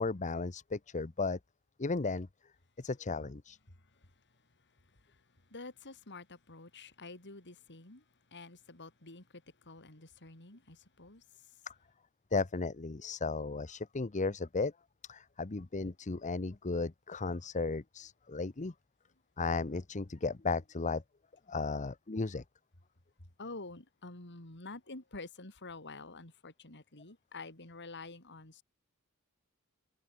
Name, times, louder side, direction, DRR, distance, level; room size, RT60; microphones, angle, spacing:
voice 1, 0.0-1.4 1.8-2.3 2.8-3.6 11.7-11.8 12.3-14.7 15.1-18.7 19.4-21.0 21.5-22.4, left 3 dB, 35° left, 0.8 m, -35 dB
voice 2, 3.7-4.1 4.8-8.0 8.3-11.6 23.2-28.6, left 3 dB, 55° left, 4.0 m, -49 dB
head